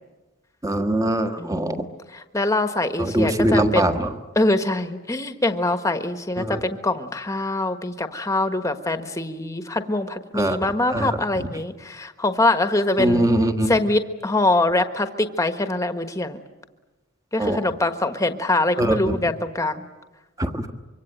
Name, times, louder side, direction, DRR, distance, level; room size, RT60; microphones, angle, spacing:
voice 1, 0.6-1.8 3.0-4.1 6.4-6.6 10.3-10.6 10.9-11.1 11.4-11.5 13.0-13.7 17.4-17.6 18.8-19.2 20.4-20.7, right 1 dB, 15° right, 6 dB, 1.5 m, -22 dB
voice 2, 1.4-4.1 4.3-13.3 13.7-16.4 17.3-19.8, left 2 dB, 15° left, 8 dB, 1.3 m, -24 dB
25.5 x 24.5 x 9.1 m, 1.1 s
head